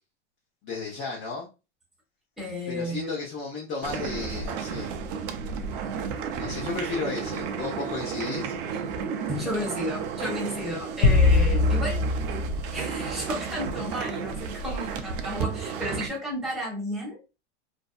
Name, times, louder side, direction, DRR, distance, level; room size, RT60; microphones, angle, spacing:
voice 1, 0.6-1.5 2.7-4.9 6.3-8.6, left 4 dB, 30° left, 0.7 m, -33 dB
voice 2, 2.4-3.1 9.3-12.0 12.7-17.2, left 1 dB, ahead, 1.0 m, -33 dB
sound 1, 3.8-16.1, right 6 dB, 45° right, 0.5 m, -33 dB
sound 2, 11.0-13.5, left 3 dB, 75° left, 0.6 m, -22 dB
2.5 x 2.1 x 2.3 m
hypercardioid pair, 120°, 36 cm